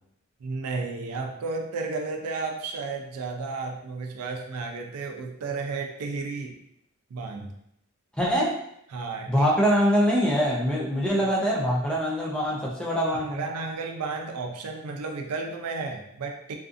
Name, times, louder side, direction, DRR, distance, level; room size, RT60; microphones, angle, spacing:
voice 1, 0.4-6.6 7.1-7.5 8.9-9.5 13.3-16.6, right 4 dB, 85° right, 3 dB, 0.4 m, -33 dB
voice 2, 8.2-8.6 9.3-13.4, equal, 5° left, -4 dB, 0.4 m, -23 dB
2.5 x 2.4 x 2.4 m, 0.75 s
head